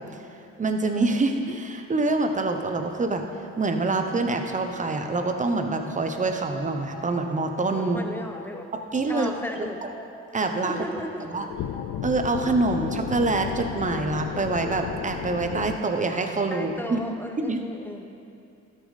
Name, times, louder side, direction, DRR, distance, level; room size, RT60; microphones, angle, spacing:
voice 1, 0.6-3.2 3.6-8.0 8.9-9.3 10.3-10.7 11.3-11.5 12.0-17.0 17.4-17.6, right 3 dB, 25° right, 5 dB, 0.9 m, -25 dB
sound 1, 4.7-14.6, left 3 dB, 20° left, 1.2 m, -43 dB
voice 2, 7.8-8.7 9.1-9.9 10.6-11.3 16.5-18.1, equal, 5° left, 4 dB, 0.8 m, -35 dB
sound 2, 11.5-15.8, left 10 dB, 70° left, 0.5 m, -33 dB
13.0 x 6.5 x 4.1 m, 2.6 s
cardioid pair, 90°, 30 cm